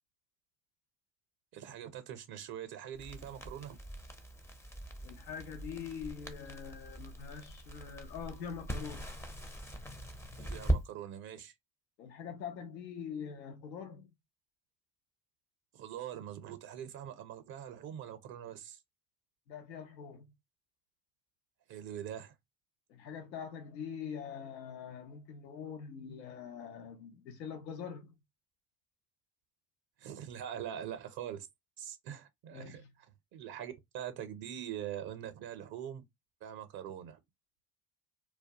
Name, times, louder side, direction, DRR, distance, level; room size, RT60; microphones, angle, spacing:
voice 1, 1.5-3.8 10.3-11.5 15.7-18.8 21.7-22.3 30.0-31.5 31.8-33.1 33.3-36.0 36.4-37.2, right 10 dB, 50° right, 0.5 m, -43 dB
Crackle, 2.9-10.8, right 1 dB, 5° left, 0.4 m, -40 dB
voice 2, 5.0-9.1 12.0-14.1 19.5-20.3 22.9-28.2 32.5-32.9, left 7 dB, 90° left, 0.6 m, -44 dB
2.2 x 2.2 x 2.6 m
hypercardioid pair, 60°, 50 cm